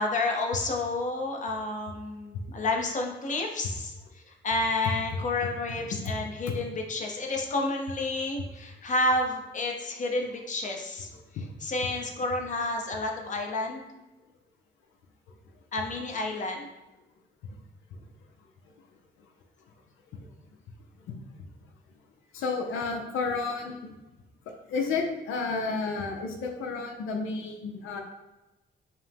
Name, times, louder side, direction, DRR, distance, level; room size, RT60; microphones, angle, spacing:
voice 1, 0.0-3.9 4.4-11.1 11.3-13.9 15.7-16.7, left 2 dB, 40° left, 2 dB, 0.7 m, -30 dB
voice 2, 22.3-23.9 24.7-28.0, left 4 dB, 85° left, 2 dB, 0.6 m, -31 dB
5.1 x 2.0 x 3.4 m, 1.0 s
cardioid pair, 90°, 20 cm